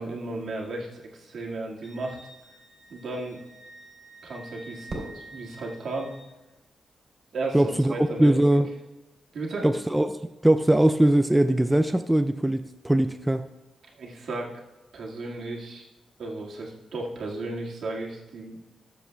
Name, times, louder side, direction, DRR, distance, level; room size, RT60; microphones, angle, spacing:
voice 1, 0.0-2.2 2.9-3.4 4.2-6.1 7.3-8.3 9.3-9.7 13.9-14.5 14.9-15.8 16.2-18.6, right 2 dB, 70° right, -2 dB, 1.9 m, -34 dB
Wind instrument woodwind instrument, 1.8-6.3, right 1 dB, 25° left, 2.0 m, -49 dB
Fireworks, 4.9-7.1, right 2 dB, 40° right, 3.2 m, -43 dB
voice 2, 7.5-8.7 9.6-13.5, right 1 dB, 10° right, 8 dB, 0.3 m, -21 dB
19.0 x 7.3 x 2.3 m, 1.1 s
wide cardioid pair, 115°, 0 cm